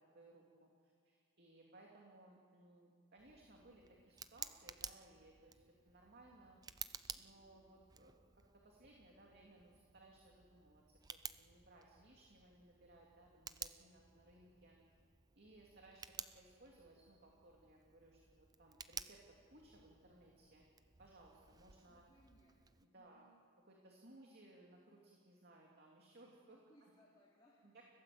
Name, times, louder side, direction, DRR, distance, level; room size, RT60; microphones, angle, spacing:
voice 1, 0.1-0.7 1.0-5.6 5.9-6.6 7.1-14.7 15.3-20.6 21.0-22.0 22.8-23.3 23.7-26.9 27.6-27.8, right 2 dB, 45° right, -1 dB, 2.7 m, -63 dB
Tick, 3.2-22.8, right 6 dB, 15° right, 0.5 m, -54 dB
voice 2, 21.5-23.4 26.5-27.8, equal, 20° left, -5 dB, 3.3 m, -70 dB
29.5 x 17.0 x 7.8 m, 2.1 s
head